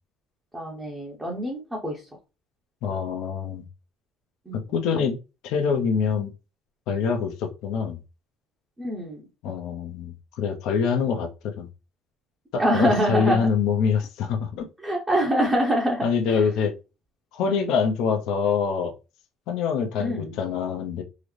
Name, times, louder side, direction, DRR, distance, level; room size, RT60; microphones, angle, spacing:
voice 1, 0.5-2.1 4.5-4.6 8.8-9.2 12.6-13.5 14.8-16.5 17.5-17.7 20.0-20.4, right 1 dB, 10° right, 0.8 m, -25 dB
voice 2, 2.8-3.7 4.7-5.2 5.4-6.3 6.9-8.0 9.4-11.7 12.5-14.7 16.0-16.7 17.3-18.9 19.5-21.0, left 6 dB, 70° left, 0.6 m, -25 dB
3.8 x 2.0 x 3.2 m
cardioid pair, 145°, 0 cm